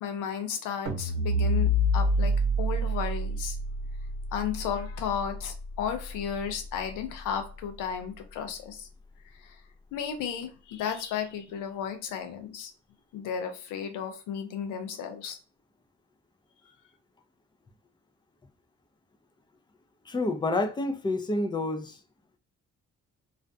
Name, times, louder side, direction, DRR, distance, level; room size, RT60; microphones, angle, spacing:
voice 1, 0.0-3.6 4.3-8.9 9.4-9.6 9.9-12.7 13.1-15.4, left 8 dB, 90° left, 0.6 m, -34 dB
sound 1, 0.9-7.2, equal, 85° right, 0.8 m, -28 dB
voice 2, 20.0-22.0, left 2 dB, 15° left, 0.4 m, -28 dB
2.5 x 2.1 x 2.5 m
cardioid pair, 90°, 30 cm